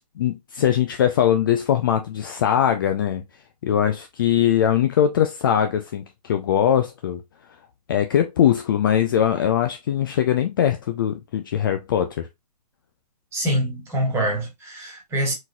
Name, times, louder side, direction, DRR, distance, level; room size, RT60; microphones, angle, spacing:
voice 1, 0.2-3.2 3.6-7.2 7.9-12.3, left 9 dB, 30° left, 0.4 m, -21 dB
voice 2, 13.3-15.3, right 1 dB, 10° right, 1.9 m, -25 dB
4.3 x 3.9 x 2.2 m
figure-of-eight pair, 135°, 21 cm